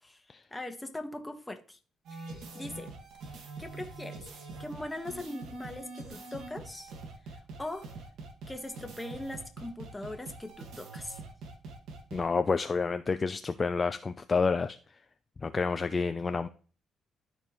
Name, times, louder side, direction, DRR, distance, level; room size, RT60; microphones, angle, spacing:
voice 1, 0.5-1.8 2.1-2.9 3.6-6.9 7.2-7.9 8.5-11.2, left 1 dB, 10° left, 6 dB, 1.4 m, -41 dB
sound 1, 2.0-12.2, right 3 dB, 80° right, 2.0 m, -44 dB
voice 2, 12.1-14.8 15.4-16.5, left 4 dB, 35° left, 9 dB, 0.5 m, -29 dB
13.5 x 4.5 x 3.0 m, 0.39 s
cardioid pair, 90°, 0 cm